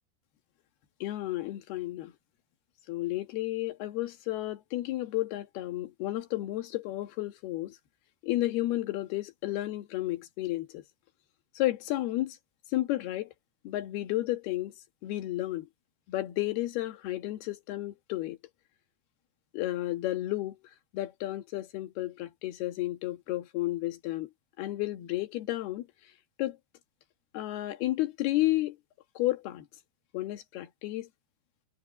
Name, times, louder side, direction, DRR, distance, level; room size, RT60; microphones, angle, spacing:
voice 1, 1.0-2.1 2.9-7.7 8.2-10.8 11.6-12.4 12.7-13.3 13.7-14.7 15.0-15.7 16.1-18.4 19.5-20.6 20.9-24.3 24.6-25.8 26.4-26.6 27.3-28.8 29.2-29.7 30.1-31.1, left 16 dB, 70° left, 3.4 m, -32 dB
omnidirectional pair, 4.8 m